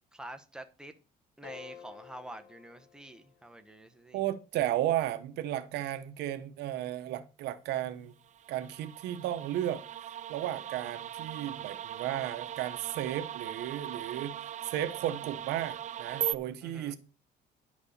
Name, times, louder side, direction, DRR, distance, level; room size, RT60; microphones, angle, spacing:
voice 1, 0.1-0.9 1.4-4.2 16.6-17.0, right 1 dB, 5° right, 1.3 m, -47 dB
sound 1, 1.4-3.7, left 8 dB, 80° left, 2.1 m, -51 dB
voice 2, 4.1-8.1 8.5-14.4 14.6-17.0, right 12 dB, 85° right, 0.9 m, -34 dB
sound 2, 8.3-16.3, right 10 dB, 45° right, 0.5 m, -39 dB
10.5 x 5.3 x 6.6 m
cardioid pair, 110°, 17 cm